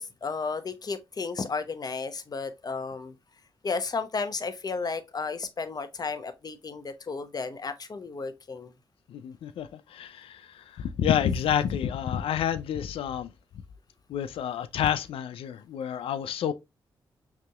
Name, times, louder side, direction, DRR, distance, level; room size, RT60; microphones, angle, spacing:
voice 1, 0.0-3.1 3.6-8.7, left 4 dB, 45° left, 0.8 m, -33 dB
voice 2, 9.1-13.3 14.1-16.5, left 9 dB, 80° left, 0.4 m, -29 dB
5.8 x 3.0 x 2.3 m
supercardioid pair, 55°, 9 cm